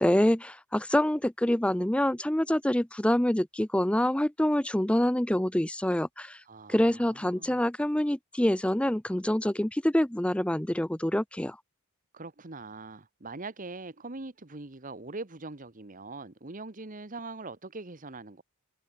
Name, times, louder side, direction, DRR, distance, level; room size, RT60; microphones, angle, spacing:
voice 1, 0.0-6.4 6.7-11.6, left 1 dB, 5° left, 0.5 m, -26 dB
voice 2, 6.4-7.6 12.1-18.4, right 3 dB, 40° right, 1.3 m, -42 dB
head